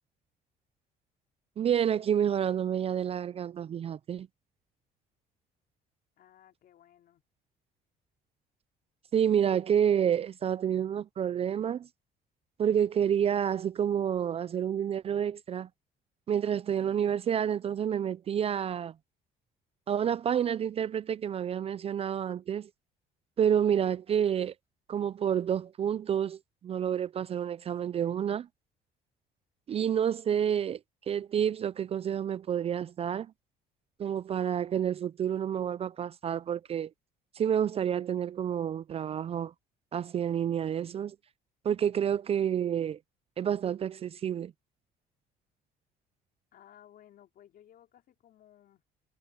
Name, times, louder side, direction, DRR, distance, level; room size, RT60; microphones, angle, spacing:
voice 1, 1.6-4.3 9.1-11.9 12.6-15.7 16.3-18.9 19.9-22.7 23.4-24.5 24.9-28.5 29.7-30.8 31.1-33.3 34.0-36.9 37.4-39.5 39.9-41.2 41.6-43.0 43.4-44.5, right 9 dB, 35° right, 0.4 m, -29 dB
voice 2, 6.2-7.2 33.0-33.1 46.5-48.8, left 11 dB, 60° left, 4.6 m, -58 dB
cardioid pair, 110°, 17 cm